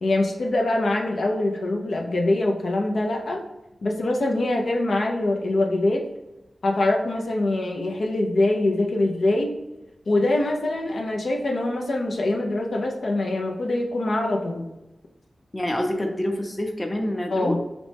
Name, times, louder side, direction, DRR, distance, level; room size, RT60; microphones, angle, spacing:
voice 1, 0.0-3.4 3.8-6.1 6.6-9.5 10.1-14.6 17.3-17.6, left 2 dB, 80° left, 0 dB, 0.6 m, -24 dB
voice 2, 15.5-17.6, left 1 dB, 25° left, 3 dB, 0.7 m, -26 dB
5.0 x 3.1 x 3.4 m, 0.97 s
wide cardioid pair, 70°, 0 cm